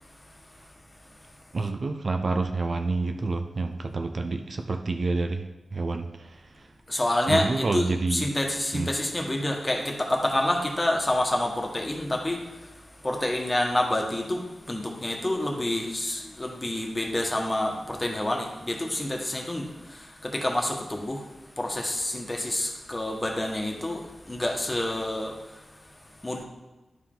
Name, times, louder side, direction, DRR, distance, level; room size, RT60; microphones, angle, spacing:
voice 1, 1.5-6.7 7.3-8.3 8.7-8.9, right 3 dB, 55° right, 6 dB, 0.6 m, -28 dB
voice 2, 6.9-26.4, left 1 dB, 25° left, 1 dB, 1.4 m, -28 dB
11.0 x 4.6 x 3.9 m, 1.1 s
cardioid pair, 55°, 0 cm